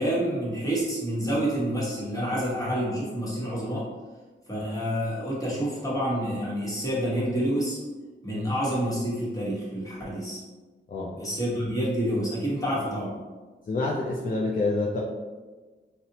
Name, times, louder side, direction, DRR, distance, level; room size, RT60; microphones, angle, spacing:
voice 1, 0.0-3.9 4.5-7.8 8.2-10.4 11.1-13.2, equal, 15° left, -7 dB, 1.1 m, -28 dB
voice 2, 13.7-15.0, left 2 dB, 45° left, -4 dB, 0.4 m, -27 dB
4.0 x 2.1 x 2.8 m, 1.3 s
wide cardioid pair, 85°, 20 cm